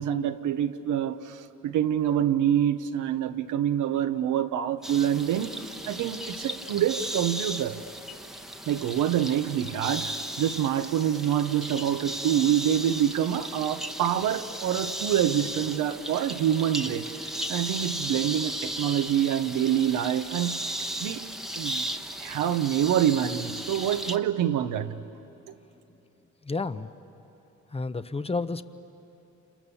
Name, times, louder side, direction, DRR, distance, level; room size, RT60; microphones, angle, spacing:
voice 1, 0.0-7.8 8.7-17.1 17.5-20.6 21.0-21.3 21.5-21.9 22.2-25.0, right 10 dB, 85° right, 1.1 m, -26 dB
sound 1, 4.8-24.2, right 1 dB, ahead, 1.1 m, -36 dB
voice 2, 26.4-26.9 27.7-28.6, left 3 dB, 20° left, 0.8 m, -30 dB
29.5 x 27.5 x 7.1 m
cardioid pair, 90°, 30 cm